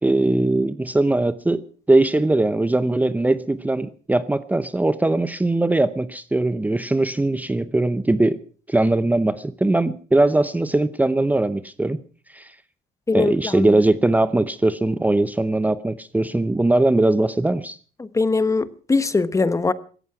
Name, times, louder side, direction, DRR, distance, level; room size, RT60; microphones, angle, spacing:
voice 1, 0.0-8.4 8.7-12.0 12.3-12.5 13.1-17.8, right 2 dB, 10° right, 0.7 m, -20 dB
voice 2, 13.1-13.7 18.0-19.7, left 3 dB, 20° left, 1.0 m, -21 dB
17.0 x 14.0 x 6.0 m
cardioid pair, 110°, 17 cm